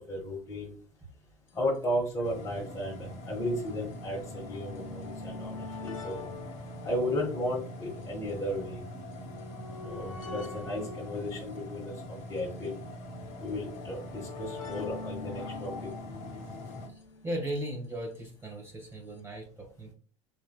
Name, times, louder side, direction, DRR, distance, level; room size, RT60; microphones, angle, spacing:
voice 1, 0.1-0.7 1.5-6.2 6.8-8.8 9.8-12.8 13.4-15.9, left 1 dB, 20° left, -5 dB, 1.5 m, -34 dB
sound 1, 1.5-1.6 1.8-1.9 2.7-18.0 18.9-19.0 19.2-19.3, left 4 dB, 70° left, 0.6 m, -45 dB
sound 2, 2.2-16.9, left 1 dB, 40° left, 1.0 m, -43 dB
voice 2, 17.2-19.9, right 1 dB, 15° right, 1 dB, 1.6 m, -37 dB
4.6 x 3.2 x 2.3 m, 0.40 s
figure-of-eight pair, 80°, 18 cm